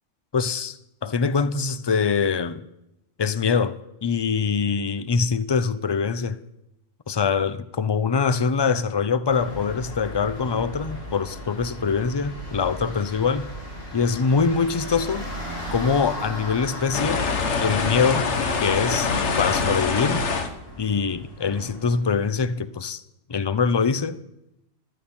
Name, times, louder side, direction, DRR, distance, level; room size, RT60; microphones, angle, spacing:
voice 1, 0.3-2.6 3.2-3.7 4.0-6.4 7.1-13.5 13.9-15.3 15.7-17.2 17.6-18.3 18.6-19.1 19.4-20.2 20.8-23.0 23.3-24.2, left 5 dB, 45° left, 0.3 m, -23 dB
sound 1, 9.3-22.4, equal, 80° left, 4.2 m, -37 dB
sound 2, 16.9-20.5, left 4 dB, 65° left, 1.5 m, -24 dB
15.5 x 13.0 x 4.4 m
omnidirectional pair, 1.3 m